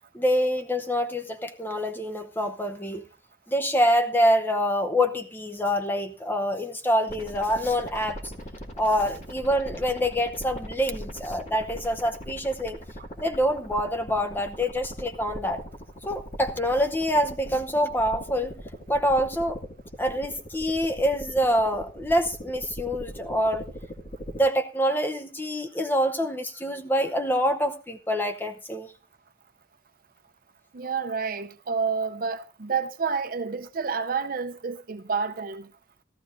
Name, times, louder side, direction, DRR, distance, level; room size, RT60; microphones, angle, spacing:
voice 1, 0.1-3.0 3.5-8.2 8.8-12.8 13.2-15.6 16.1-18.5 18.9-19.6 20.0-23.7 24.4-28.9, equal, 10° left, 0.8 m, -26 dB
sound 1, 7.1-24.4, equal, 40° left, 2.1 m, -40 dB
voice 2, 30.7-35.7, right 5 dB, 50° right, 0.6 m, -29 dB
15.5 x 13.0 x 2.6 m
head